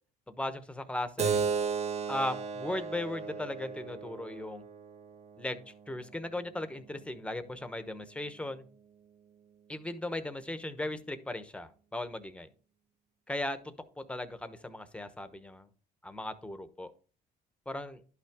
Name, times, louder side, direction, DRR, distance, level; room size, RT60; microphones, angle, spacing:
voice 1, 0.3-1.4 2.1-4.6 5.4-8.7 9.7-12.5 13.3-15.7 16.0-16.9 17.7-18.0, left 1 dB, 5° left, 10 dB, 1.0 m, -37 dB
Keyboard (musical), 1.2-6.3, right 6 dB, 40° right, 0.8 m, -35 dB
11.5 x 5.7 x 3.6 m, 0.39 s
cardioid pair, 110°, 17 cm